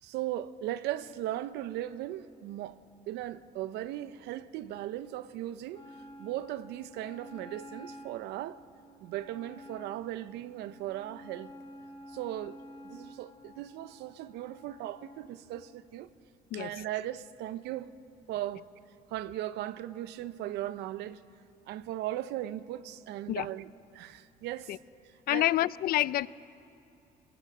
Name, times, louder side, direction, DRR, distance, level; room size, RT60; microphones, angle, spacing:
voice 1, 0.0-2.8 3.1-5.9 6.2-8.6 9.0-11.5 12.1-12.6 12.8-16.1 16.5-17.9 18.3-18.7 19.1-21.2 21.7-24.8 25.3-25.5, right 13 dB, 85° right, 0.7 m, -37 dB
Wind instrument woodwind instrument, 5.7-15.3, equal, 30° left, 2.8 m, -51 dB
voice 2, 16.5-16.8 23.3-23.5 24.7-24.8 25.3-26.3, left 14 dB, 65° left, 0.5 m, -28 dB
22.5 x 19.5 x 7.5 m
cardioid pair, 110°, 17 cm